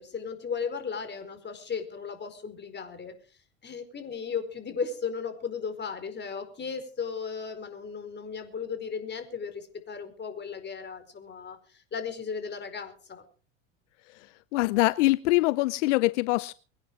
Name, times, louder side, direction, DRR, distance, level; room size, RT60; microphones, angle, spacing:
voice 1, 0.0-3.1 3.6-13.2, left 6 dB, 30° left, 8 dB, 4.8 m, -36 dB
voice 2, 14.5-16.5, left 20 dB, 80° left, 18 dB, 0.6 m, -23 dB
24.0 x 9.9 x 4.8 m, 0.39 s
hypercardioid pair, 90°, 36 cm